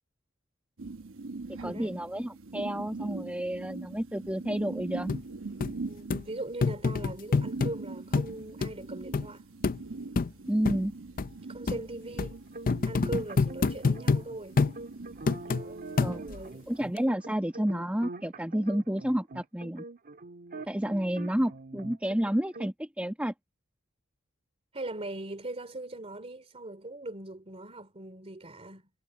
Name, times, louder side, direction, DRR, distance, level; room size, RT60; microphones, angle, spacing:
sound 1, 0.8-16.9, right 3 dB, 65° right, 1.1 m, -43 dB
voice 1, 1.5-5.1 10.5-10.9 16.0-16.2 16.7-19.8 20.7-23.3, equal, 5° right, 1.6 m, -30 dB
sound 2, 5.1-5.2 5.6-5.7 6.1-6.2 6.6-7.7 8.1-8.3 8.6-8.7 9.1-9.3 9.6-9.8 10.2-10.3 10.6-10.8 11.2-11.3 11.7-11.8 12.2-12.3 12.7-14.2 14.6-14.8 15.3-15.6 16.0-16.4 17.0-17.1, left 4 dB, 40° left, 0.5 m, -26 dB
voice 2, 5.9-9.4 11.5-12.4 12.8-14.6 15.5-16.7 24.7-28.9, right 2 dB, 30° right, 3.0 m, -40 dB
sound 3, 12.3-22.7, right 2 dB, 45° right, 1.6 m, -44 dB
head